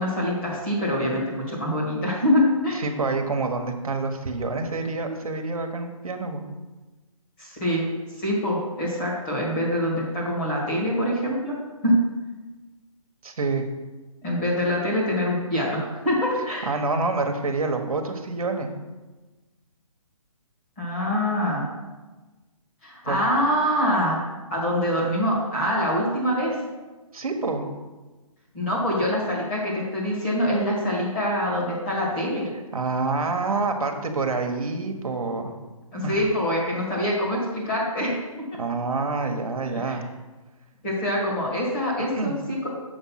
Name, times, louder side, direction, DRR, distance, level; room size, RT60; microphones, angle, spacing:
voice 1, 0.0-2.8 7.4-7.8 8.2-11.6 11.8-11.9 14.2-16.7 20.8-21.7 22.8-24.2 24.5-26.6 28.5-32.5 35.9-38.1 39.7-40.0 40.8-42.7, left 1 dB, 20° left, -5 dB, 1.9 m, -25 dB
voice 2, 2.7-6.4 13.2-13.6 16.7-18.7 23.0-23.2 27.1-27.7 32.7-35.5 36.0-36.2 38.6-40.0 42.2-42.4, right 3 dB, 80° right, 4 dB, 1.2 m, -27 dB
6.8 x 5.3 x 5.7 m, 1.2 s
hypercardioid pair, 175°, 18 cm